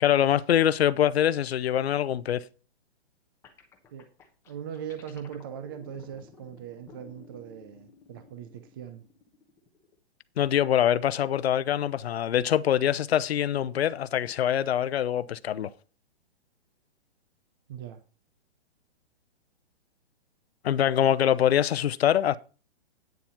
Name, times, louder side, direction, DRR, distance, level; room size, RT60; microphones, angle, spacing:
voice 1, 0.0-2.4 10.4-15.7 20.6-22.4, left 10 dB, 70° left, 0.7 m, -24 dB
sound 1, 3.4-10.0, left 5 dB, 10° left, 0.9 m, -53 dB
voice 2, 4.5-9.0 17.7-18.0, right 9 dB, 20° right, 0.6 m, -40 dB
9.3 x 7.2 x 5.7 m
hypercardioid pair, 170°, 33 cm